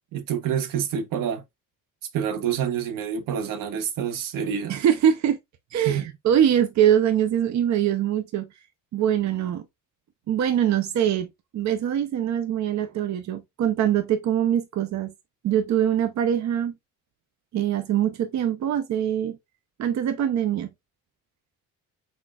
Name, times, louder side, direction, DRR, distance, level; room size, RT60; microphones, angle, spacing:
voice 1, 0.1-1.4 2.1-4.8 5.8-6.1, right 8 dB, 80° right, 0.9 m, -27 dB
voice 2, 4.7-5.4 5.7-8.5 8.9-9.6 10.3-15.1 15.4-16.7 17.5-19.4 19.8-20.7, right 10 dB, 60° right, 0.7 m, -23 dB
4.4 x 4.3 x 2.3 m
cardioid pair, 135°, 32 cm